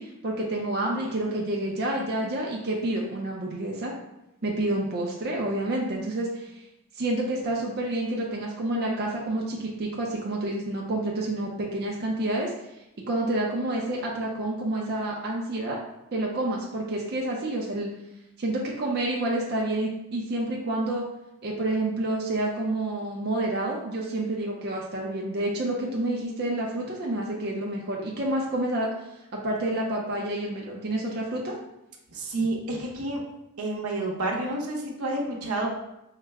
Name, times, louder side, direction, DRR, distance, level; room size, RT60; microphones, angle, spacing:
voice 1, 0.0-3.9 4.4-6.6 7.0-12.5 13.1-15.8 16.1-17.9 18.4-21.0 21.4-28.9 29.3-31.5, right 1 dB, 50° right, -3 dB, 0.5 m, -29 dB
voice 2, 32.1-33.2 33.6-35.7, right 2 dB, 85° right, -1 dB, 0.8 m, -29 dB
4.6 x 2.1 x 3.4 m, 0.89 s
head